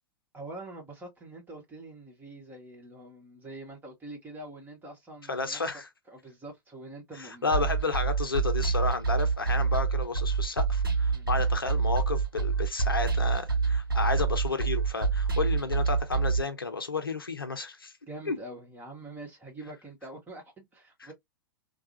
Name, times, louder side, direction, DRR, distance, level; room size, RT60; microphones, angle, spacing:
voice 1, 0.3-5.6 6.1-7.7 11.1-11.4 18.1-21.1, right 2 dB, 15° right, 1.7 m, -45 dB
voice 2, 5.3-5.9 7.2-17.9 18.3-18.4 21.0-21.1, left 3 dB, 85° left, 0.7 m, -32 dB
sound 1, 7.5-16.4, right 5 dB, 85° right, 1.0 m, -27 dB
3.3 x 2.4 x 2.7 m
figure-of-eight pair, 100°, 12 cm